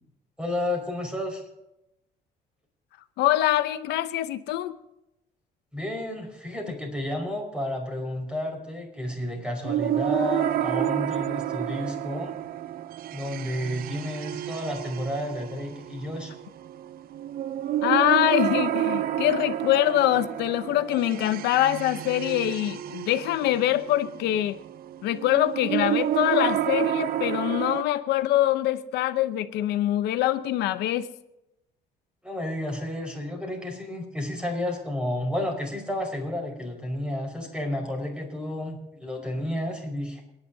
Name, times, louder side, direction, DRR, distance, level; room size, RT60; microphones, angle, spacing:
voice 1, 0.4-1.4 5.7-12.3 13.1-16.3 32.2-40.2, left 1 dB, 5° right, 2 dB, 5.1 m, -31 dB
voice 2, 3.2-4.8 17.8-24.6 25.0-31.1, left 13 dB, 80° left, 11 dB, 0.8 m, -24 dB
sound 1, 9.6-27.8, right 11 dB, 60° right, 0.7 m, -30 dB
28.5 x 10.5 x 2.8 m, 0.89 s
cardioid pair, 110°, 17 cm